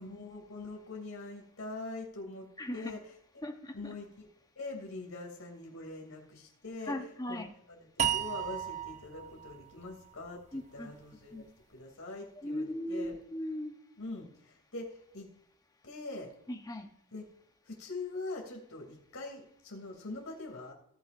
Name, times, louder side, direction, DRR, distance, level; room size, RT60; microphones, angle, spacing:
voice 1, 0.0-2.5 2.7-3.0 3.7-4.3 4.6-6.9 7.3-7.4 7.7-13.2 14.0-15.3 15.8-16.3 17.1-17.2 17.7-20.7, left 2 dB, 80° left, 0 dB, 3.0 m, -43 dB
voice 2, 2.6-2.9 3.4-3.9 6.9-7.5 10.5-10.9 11.3-11.4 12.4-13.7 16.5-16.9, left 1 dB, 20° left, 5 dB, 1.0 m, -38 dB
sound 1, 8.0-11.2, right 9 dB, 35° right, 0.6 m, -36 dB
18.0 x 6.2 x 2.6 m, 0.76 s
head